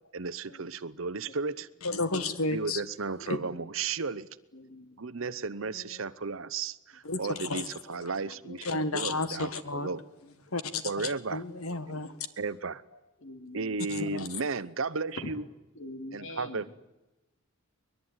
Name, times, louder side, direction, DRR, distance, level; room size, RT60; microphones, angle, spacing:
voice 1, 0.1-1.7 2.5-4.3 5.0-10.0 10.8-11.4 11.9-12.0 12.4-12.8 13.5-15.4 16.1-16.7, right 4 dB, 70° right, 0.8 m, -34 dB
voice 2, 1.8-2.8 3.3-3.4 7.0-7.7 8.6-9.9 10.5-12.1 13.9-14.3, left 3 dB, 85° left, 1.7 m, -32 dB
voice 3, 4.5-5.0 5.3-6.0 7.2-7.3 7.9-8.1 8.4-8.6 9.7-10.3 11.0-11.1 12.1-12.2 12.9-13.9 15.2-15.3 15.7-16.7, left 1 dB, 60° left, 2.9 m, -46 dB
23.0 x 21.0 x 9.7 m
head